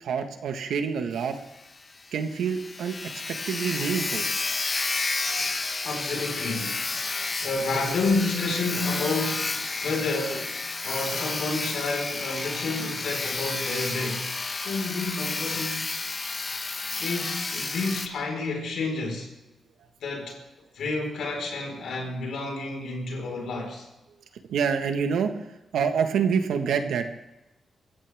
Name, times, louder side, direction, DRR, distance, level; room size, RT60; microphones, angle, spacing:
voice 1, 0.0-1.4 2.1-2.9 3.3-4.2 24.5-25.3 25.7-27.1, right 6 dB, 90° right, 1.6 m, -26 dB
Sawing, 1.2-1.3 1.6-1.7 2.1-2.2 2.3-18.1, left 3 dB, 40° left, 1.3 m, -31 dB
voice 2, 5.4-7.1 7.4-16.0 17.0-19.3 20.0-20.4 20.7-23.9, left 3 dB, 80° left, 4.7 m, -30 dB
24.0 x 15.0 x 3.6 m
cardioid pair, 80°, 0 cm